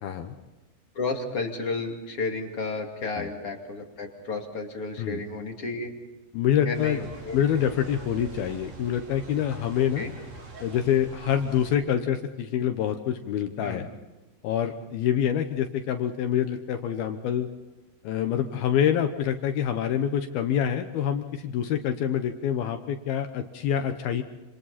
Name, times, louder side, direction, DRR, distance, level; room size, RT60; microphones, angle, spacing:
voice 1, 0.0-0.3 3.2-3.3 5.0-5.2 6.3-7.0 7.3-10.1 10.6-13.9 14.4-17.5 18.0-24.2, left 9 dB, 70° left, 6 dB, 2.6 m, -26 dB
voice 2, 0.9-5.9 6.6-7.7 10.0-10.1 13.6-13.9, left 3 dB, 35° left, 2 dB, 2.9 m, -32 dB
sound 1, 6.7-11.8, right 2 dB, 65° right, 6.5 m, -44 dB
29.0 x 27.0 x 4.2 m, 1.1 s
omnidirectional pair, 5.1 m